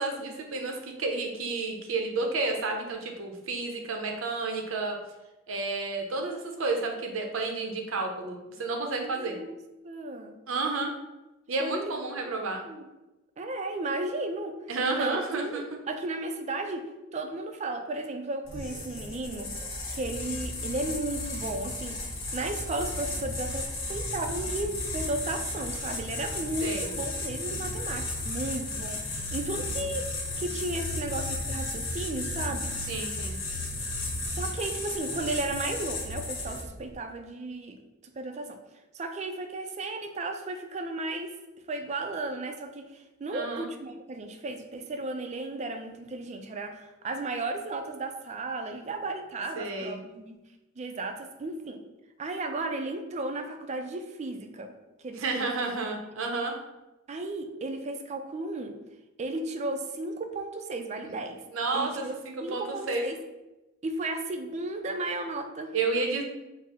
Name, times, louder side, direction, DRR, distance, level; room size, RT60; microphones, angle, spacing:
voice 1, 0.0-5.0 5.5-9.4 10.5-10.9 11.5-12.6 14.7-15.6 26.6-26.9 32.9-33.4 43.3-43.7 49.6-50.0 55.2-56.6 61.0-61.1 61.5-63.0 65.7-66.2, right 3 dB, 75° right, 3 dB, 0.6 m, -31 dB
voice 2, 9.0-9.6 9.8-10.3 11.6-11.9 12.2-12.8 13.4-14.5 14.9-16.8 17.1-19.5 19.9-32.7 34.3-37.8 38.2-38.6 38.9-41.3 41.7-50.4 50.8-51.8 52.2-54.7 55.0-55.5 57.1-58.8 59.2-61.4 61.7-62.1 62.4-63.2 63.8-65.7, right 2 dB, 35° right, 6 dB, 0.3 m, -34 dB
sound 1, 18.5-36.8, left 2 dB, 75° left, 1.0 m, -34 dB
4.1 x 2.0 x 3.6 m, 1.0 s
head